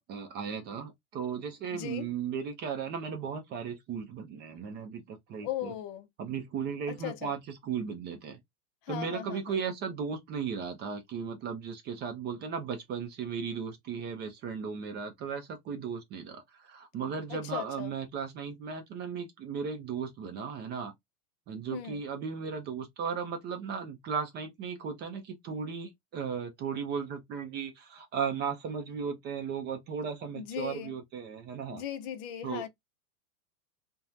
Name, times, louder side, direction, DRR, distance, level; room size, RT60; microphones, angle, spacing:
voice 1, 0.0-5.7 6.2-8.4 8.9-20.9 21.5-31.8 32.4-32.6, right 6 dB, 25° right, 0.5 m, -36 dB
voice 2, 1.7-2.1 5.4-6.1 6.9-7.3 8.9-9.6 17.3-17.9 21.7-22.0 30.4-30.9 31.7-32.7, left 10 dB, 40° left, 0.6 m, -38 dB
3.0 x 2.2 x 2.4 m
hypercardioid pair, 115°, 46 cm